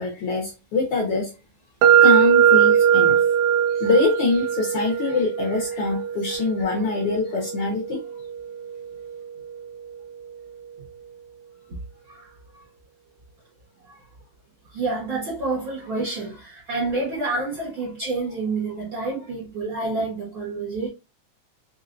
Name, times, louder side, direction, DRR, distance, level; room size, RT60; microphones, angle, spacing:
voice 1, 0.0-1.3 2.0-3.2 3.7-8.0, left 4 dB, 65° left, 1.5 m, -24 dB
sound 1, 1.8-9.7, right 8 dB, 85° right, 1.5 m, -21 dB
voice 2, 12.1-12.6 13.8-14.0 14.7-20.9, right 3 dB, 55° right, 1.5 m, -28 dB
5.0 x 2.7 x 2.4 m
omnidirectional pair, 3.7 m